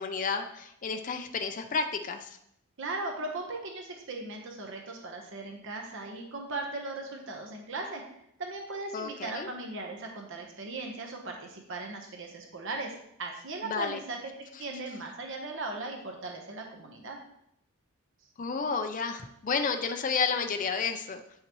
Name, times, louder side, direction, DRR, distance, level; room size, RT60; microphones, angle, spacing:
voice 1, 0.0-2.3 8.9-9.5 13.6-14.0 18.4-21.2, left 5 dB, 40° left, 6 dB, 0.5 m, -31 dB
voice 2, 2.8-8.0 8.4-12.9 13.2-17.2, right 2 dB, 60° right, 2 dB, 1.0 m, -38 dB
8.4 x 5.7 x 3.0 m, 0.76 s
head